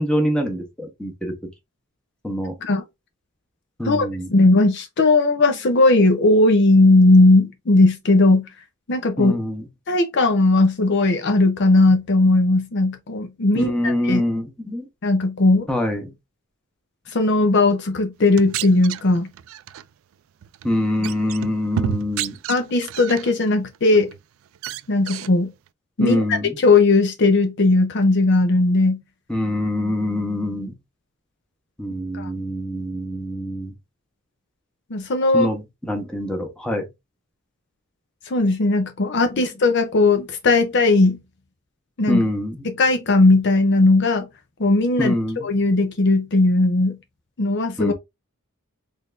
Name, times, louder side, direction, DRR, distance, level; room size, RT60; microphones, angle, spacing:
voice 1, 0.0-1.3 2.2-2.5 3.8-4.3 9.2-9.6 13.5-14.9 15.7-16.1 20.6-22.3 26.0-26.6 29.3-30.7 31.8-33.7 35.3-36.9 39.3-39.4 42.1-42.6 45.0-45.5 47.8-47.9, left 1 dB, 5° left, 1.1 m, -24 dB
voice 2, 4.3-8.5 8.9-9.3 9.9-14.2 15.0-15.7 17.1-19.3 22.5-24.1 24.9-25.5 26.0-26.2 26.6-29.0 32.1-32.3 34.9-35.5 38.3-41.2 42.0-42.2 42.6-44.3 44.6-45.1 45.4-47.0 47.4-47.9, left 2 dB, 55° left, 0.6 m, -17 dB
sound 1, 18.2-19.8 20.4-20.7 21.0-23.3 23.7-24.2 24.5-25.3, right 9 dB, 70° right, 0.3 m, -30 dB
4.0 x 3.3 x 2.5 m
head